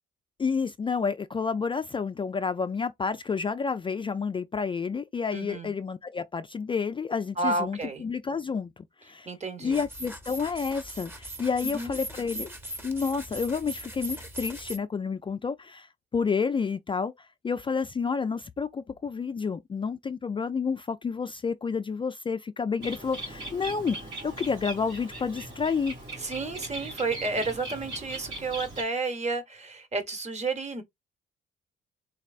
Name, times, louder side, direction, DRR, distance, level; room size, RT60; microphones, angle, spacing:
voice 1, 0.4-9.3 9.6-12.5 12.8-15.9 16.1-24.0 24.2-26.0, left 5 dB, 25° left, 0.4 m, -30 dB
voice 2, 5.3-5.7 7.4-8.0 9.2-9.8 11.6-12.0 26.2-30.8, right 3 dB, 35° right, 1.4 m, -31 dB
sound 1, 9.7-14.8, right 1 dB, 10° right, 1.1 m, -39 dB
Bird, 22.8-28.8, right 2 dB, 80° right, 2.8 m, -40 dB
4.0 x 3.3 x 2.4 m
cardioid pair, 90°, 20 cm